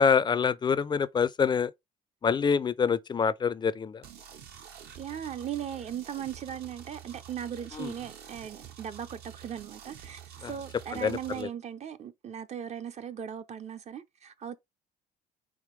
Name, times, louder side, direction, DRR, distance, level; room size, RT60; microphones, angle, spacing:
voice 1, 0.0-1.7 2.2-4.0 7.7-7.9 10.4-10.5 10.9-11.5, left 6 dB, 25° left, 0.4 m, -26 dB
sound 1, 4.0-11.4, right 9 dB, 70° right, 1.1 m, -48 dB
voice 2, 5.0-14.6, right 9 dB, 40° right, 0.5 m, -38 dB
4.9 x 3.3 x 3.2 m
cardioid pair, 110°, 17 cm